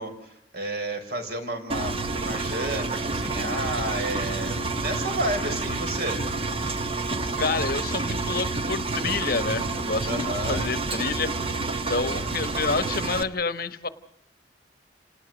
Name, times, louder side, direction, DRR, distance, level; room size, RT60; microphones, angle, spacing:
voice 1, 0.0-6.2 10.0-10.7, right 1 dB, 55° right, 6 dB, 5.0 m, -31 dB
Engine, 1.7-13.2, right 3 dB, 30° right, 1.1 m, -29 dB
sound 1, 3.3-10.9, equal, 80° right, 5.1 m, -41 dB
voice 2, 7.4-11.3 11.9-13.9, left 4 dB, 50° left, 11 dB, 1.1 m, -28 dB
29.0 x 19.0 x 6.2 m, 0.83 s
head